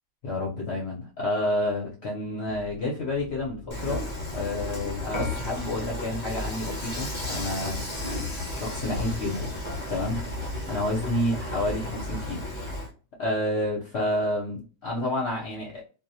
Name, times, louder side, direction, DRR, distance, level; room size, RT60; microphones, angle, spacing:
voice 1, 0.2-7.8 8.5-9.5 9.9-12.5 13.2-15.9, left 1 dB, 60° left, -3 dB, 0.8 m, -29 dB
sound 1, 2.4-12.3, equal, 70° right, 0.3 m, -47 dB
Dishes pots and pans / Frying (food), 3.7-12.9, left 1 dB, 35° left, 0.5 m, -33 dB
2.4 x 2.0 x 2.6 m, 0.37 s
omnidirectional pair, 1.5 m